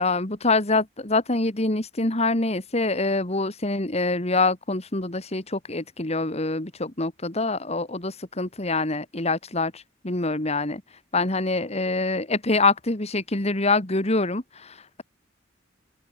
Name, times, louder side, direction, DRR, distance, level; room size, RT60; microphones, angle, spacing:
voice 1, 0.0-15.0, left 3 dB, 35° left, 2.3 m, -25 dB
open air
head